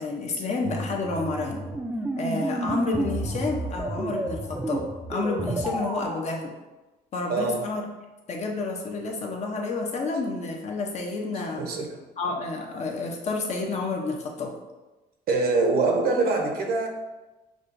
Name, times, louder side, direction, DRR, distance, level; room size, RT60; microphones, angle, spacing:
voice 1, 0.0-1.7 2.2-6.5 7.1-7.8 8.3-11.7 12.2-14.6, left 3 dB, 40° left, 1 dB, 0.7 m, -30 dB
sound 1, 0.6-6.2, right 1 dB, 10° right, 0.4 m, -30 dB
voice 2, 7.3-7.6 11.6-11.9 15.3-16.9, right 3 dB, 65° right, 2 dB, 0.8 m, -24 dB
6.1 x 2.3 x 2.6 m, 1.1 s
cardioid pair, 110°, 17 cm